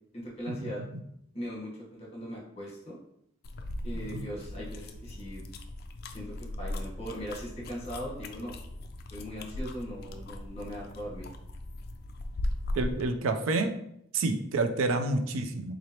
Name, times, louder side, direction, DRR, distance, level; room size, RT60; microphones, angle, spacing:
voice 1, 0.1-0.8 1.3-3.0 3.8-5.4 6.1-8.6 9.1-11.3, equal, 30° left, -4 dB, 1.1 m, -39 dB
sound 1, 3.4-13.1, left 1 dB, 45° left, 0.3 m, -38 dB
voice 2, 12.8-13.7 14.1-15.7, right 3 dB, 85° right, 7 dB, 0.4 m, -28 dB
3.8 x 3.1 x 2.9 m, 0.75 s
head